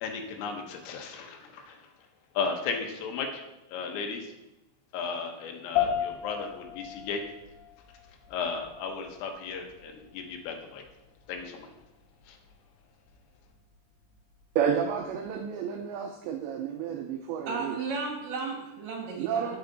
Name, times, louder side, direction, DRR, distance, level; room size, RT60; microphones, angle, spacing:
voice 1, 0.0-1.8 2.4-3.4 3.7-4.3 4.9-7.2 8.3-10.8 11.3-11.7 12.3-12.4, left 5 dB, 80° left, 3 dB, 3.6 m, -35 dB
sound 1, 5.8-15.3, left 10 dB, 65° left, 3.0 m, -37 dB
voice 2, 14.6-17.8 19.2-19.6, right 8 dB, 90° right, 4 dB, 2.4 m, -30 dB
voice 3, 17.5-19.6, right 4 dB, 65° right, -1 dB, 2.3 m, -34 dB
9.5 x 8.9 x 4.0 m, 0.95 s
omnidirectional pair, 5.9 m